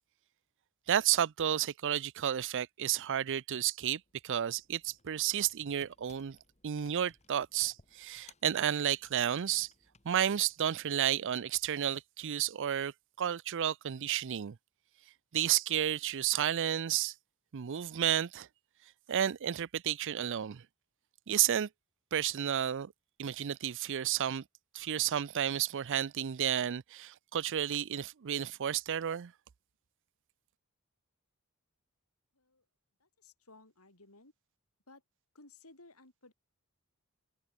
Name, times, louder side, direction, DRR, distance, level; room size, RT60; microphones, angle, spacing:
voice 1, 0.9-6.4 6.6-9.7 10.0-12.9 13.2-14.6 15.3-17.1 17.5-18.5 19.1-20.6 21.3-21.7 22.1-22.9 23.2-24.4 24.7-29.3, right 10 dB, 55° right, 0.5 m, -31 dB
Computer keyboard, 3.8-10.8, left 4 dB, 30° left, 6.1 m, -64 dB
voice 2, 32.3-32.7 33.0-34.3 34.9-35.0 35.3-36.3, left 2 dB, 75° left, 7.3 m, -58 dB
head